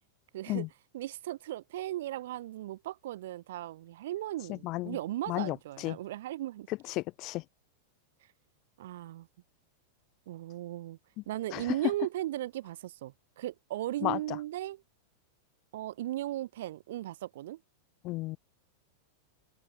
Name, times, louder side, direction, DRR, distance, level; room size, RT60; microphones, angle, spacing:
voice 1, 0.3-0.7 0.9-6.7 8.8-9.3 10.3-11.0 11.3-14.8 15.7-17.6, right 14 dB, 65° right, 4.3 m, -37 dB
voice 2, 4.5-5.0 5.3-6.0 6.9-7.4 11.5-11.6 14.0-14.4 18.0-18.4, left 20 dB, 30° left, 1.0 m, -33 dB
supercardioid pair, 170°, 0 cm